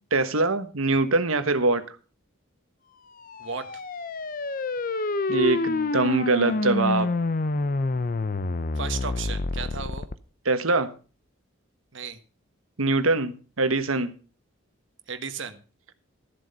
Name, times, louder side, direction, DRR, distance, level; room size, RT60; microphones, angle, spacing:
voice 1, 0.1-1.8 5.3-7.1 10.4-10.9 12.8-14.1, right 2 dB, 80° right, 10 dB, 1.3 m, -23 dB
sound 1, 3.2-10.1, left 2 dB, 40° left, 0.6 m, -27 dB
voice 2, 8.7-10.1 11.9-12.2 15.1-15.6, right 6 dB, 60° right, 8 dB, 1.4 m, -34 dB
13.5 x 7.7 x 5.5 m, 0.37 s
head